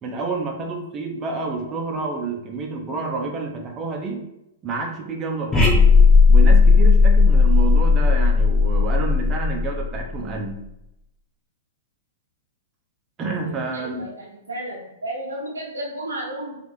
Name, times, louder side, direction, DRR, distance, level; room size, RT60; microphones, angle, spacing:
voice 1, 0.0-4.2 4.6-5.9 6.3-10.6 13.2-14.1, right 4 dB, 25° right, 2 dB, 0.7 m, -29 dB
sound 1, 5.5-10.2, left 4 dB, 15° left, 1.0 m, -15 dB
voice 2, 13.3-16.6, right 1 dB, 90° right, -5 dB, 0.7 m, -33 dB
4.7 x 2.4 x 2.7 m, 0.85 s
figure-of-eight pair, 110°, 0 cm